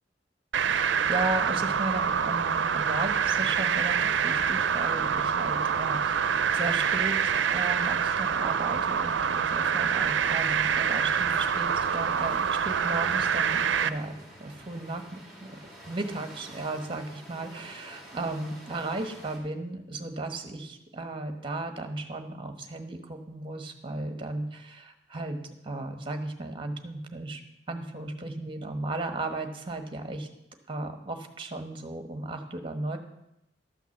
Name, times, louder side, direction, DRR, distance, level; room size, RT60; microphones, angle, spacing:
sound 1, 0.5-13.9, right 7 dB, 85° right, 0.5 m, -26 dB
voice 1, 0.7-15.6 15.9-25.4 25.6-27.4 27.7-30.3 30.7-33.0, right 2 dB, 30° right, 6 dB, 1.2 m, -35 dB
sound 2, 11.0-19.4, right 1 dB, ahead, 2.5 m, -49 dB
12.5 x 5.8 x 7.2 m, 0.84 s
head